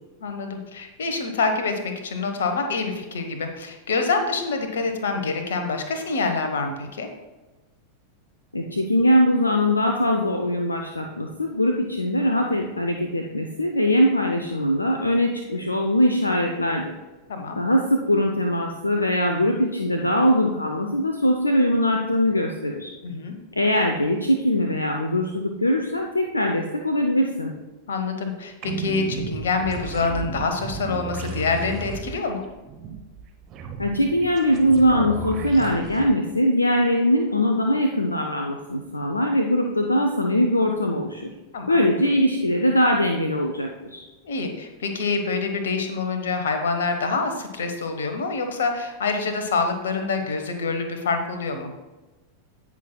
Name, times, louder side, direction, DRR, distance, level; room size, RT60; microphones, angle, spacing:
voice 1, 0.2-7.1 17.3-17.6 23.0-23.4 27.9-32.4 41.5-41.9 44.2-51.7, left 4 dB, 65° left, 6 dB, 1.2 m, -26 dB
voice 2, 8.5-16.9 17.6-22.9 23.5-27.5 33.8-41.3 41.7-44.1, equal, 80° left, 3 dB, 0.6 m, -21 dB
sound 1, 28.6-36.1, right 4 dB, 35° right, 1.1 m, -34 dB
17.0 x 6.0 x 2.3 m, 1.2 s
figure-of-eight pair, 90°, 0 cm